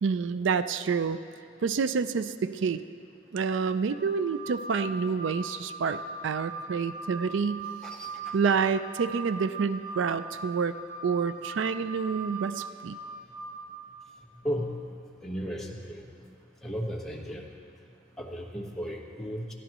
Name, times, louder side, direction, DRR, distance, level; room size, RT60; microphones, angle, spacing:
voice 1, 0.0-1.2 1.6-2.8 3.3-7.7 8.3-10.7 11.0-13.0, right 5 dB, 75° right, 12 dB, 0.4 m, -28 dB
Wind instrument woodwind instrument, 3.9-13.5, right 3 dB, 30° right, 3.8 m, -40 dB
voice 2, 7.8-8.4 14.4-14.7 15.2-16.0 16.6-17.5 18.2-19.5, equal, ahead, -2 dB, 1.2 m, -35 dB
21.5 x 14.0 x 3.0 m, 2.6 s
head